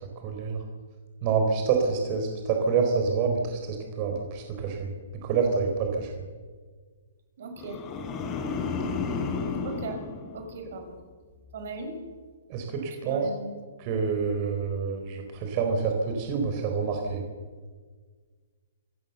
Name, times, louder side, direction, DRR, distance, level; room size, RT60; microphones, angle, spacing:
voice 1, 0.2-0.6 1.2-4.9 5.2-6.1 12.5-13.3 13.8-17.2, right 5 dB, 35° right, 3 dB, 4.1 m, -27 dB
voice 2, 7.4-7.8 9.6-10.0 10.3-11.0 11.5-12.0 13.0-13.5, right 3 dB, 60° right, 6 dB, 5.6 m, -38 dB
sound 1, 7.6-11.0 11.4-11.8, left 4 dB, 25° left, 4.4 m, -33 dB
27.5 x 15.5 x 7.0 m, 1.5 s
hypercardioid pair, 145°, 0 cm